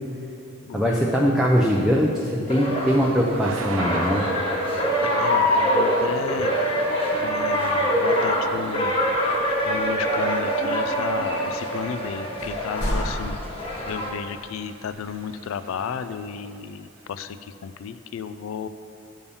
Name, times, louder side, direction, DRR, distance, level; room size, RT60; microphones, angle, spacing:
voice 1, 0.7-4.2, equal, ahead, -3 dB, 0.5 m, -21 dB
sound 1, 2.5-14.1, equal, 25° left, 1.1 m, -24 dB
Thunder / Rain, 3.1-16.6, right 4 dB, 85° right, 0.6 m, -40 dB
voice 2, 5.0-6.5 7.2-8.9 9.6-13.4 13.9-18.7, left 7 dB, 80° left, 12 dB, 0.3 m, -33 dB
sound 2, 12.4-14.0 14.9-15.1, equal, 50° left, 0.9 m, -30 dB
7.1 x 5.5 x 6.9 m, 2.6 s
head